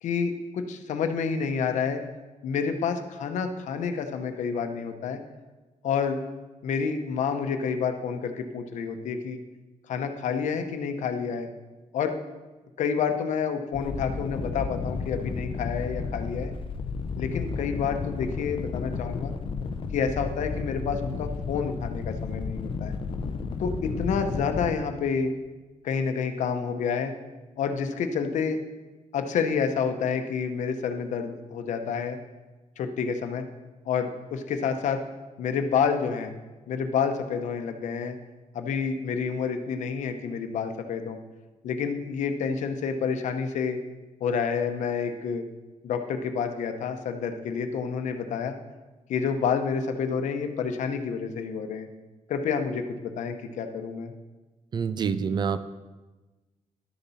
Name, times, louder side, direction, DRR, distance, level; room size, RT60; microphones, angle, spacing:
voice 1, 0.0-2.0 2.4-5.2 5.8-6.2 6.6-9.4 9.9-11.5 11.9-12.1 12.8-16.5 17.2-19.3 19.9-22.9 23.6-25.3 25.8-27.1 27.6-28.6 29.1-32.2 32.8-33.4 33.8-35.0 35.4-36.3 36.7-38.2 38.5-41.2 41.6-43.8 44.2-45.4 45.8-48.5 49.1-51.9 52.3-54.1, left 6 dB, 75° left, 7 dB, 0.9 m, -29 dB
sound 1, 13.7-24.7, left 4 dB, 45° left, 0.6 m, -32 dB
voice 2, 54.7-55.6, right 6 dB, 35° right, 12 dB, 0.4 m, -26 dB
11.5 x 6.9 x 4.2 m, 1.2 s
wide cardioid pair, 155°, 12 cm